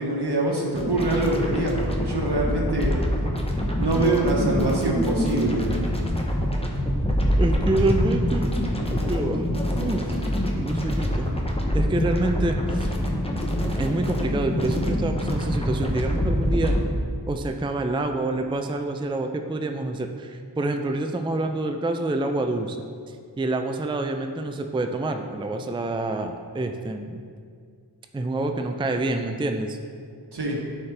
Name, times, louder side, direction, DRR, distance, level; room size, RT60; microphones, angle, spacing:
voice 1, 0.0-2.9 3.8-5.7 30.3-30.6, right 2 dB, 75° right, -1 dB, 1.2 m, -24 dB
sound 1, 0.7-16.9, equal, 15° left, 0.9 m, -25 dB
voice 2, 7.4-8.5 9.1-9.5 9.8-10.2 10.6-11.3 11.7-12.9 13.8-16.8 17.3-22.8 23.4-27.2 28.1-29.8, right 2 dB, 15° right, 5 dB, 0.4 m, -27 dB
10.5 x 4.4 x 3.3 m, 2.2 s
wide cardioid pair, 40°, 41 cm